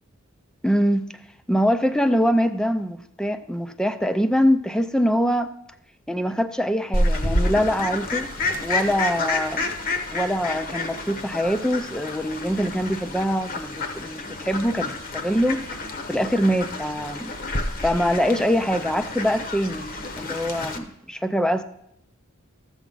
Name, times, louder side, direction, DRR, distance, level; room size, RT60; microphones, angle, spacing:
voice 1, 0.6-1.1 1.5-5.5 6.1-8.3 8.6-9.6 10.1-15.6 16.1-17.3 17.8-19.9 20.2-21.6, equal, 5° left, 0.4 m, -23 dB
Fowl, 6.9-20.8, left 2 dB, 45° left, 0.9 m, -29 dB
14.0 x 7.2 x 3.9 m
head